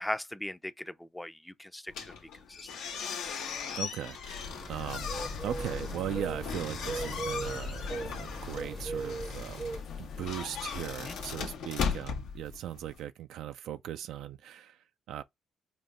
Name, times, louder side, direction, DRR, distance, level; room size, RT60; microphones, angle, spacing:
voice 1, 0.0-2.2 2.5-3.0 11.0-11.2, left 1 dB, 10° left, 0.4 m, -39 dB
sound 1, 1.9-13.0, left 6 dB, 90° left, 1.1 m, -39 dB
voice 2, 3.7-5.1 5.4-15.2, right 11 dB, 85° right, 0.3 m, -39 dB
sound 2, 4.4-9.8, right 4 dB, 40° right, 0.6 m, -39 dB
sound 3, 4.7-11.6, left 5 dB, 70° left, 0.6 m, -42 dB
5.2 x 2.2 x 3.7 m
cardioid pair, 90°, 0 cm